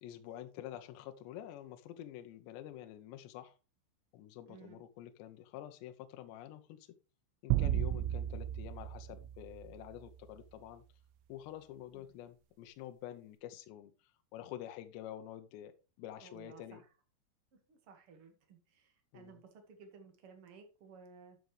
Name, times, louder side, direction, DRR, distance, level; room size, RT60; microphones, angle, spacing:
voice 1, 0.0-3.5 4.1-6.9 7.4-10.8 11.3-16.8 19.1-19.4, left 12 dB, 80° left, 2.7 m, -48 dB
voice 2, 4.5-4.8 8.0-8.2 11.9-12.1 16.2-16.8 17.5-21.4, right 5 dB, 55° right, 1.5 m, -57 dB
sound 1, 7.5-10.1, right 13 dB, 90° right, 3.2 m, -34 dB
13.0 x 6.7 x 3.3 m
omnidirectional pair, 5.6 m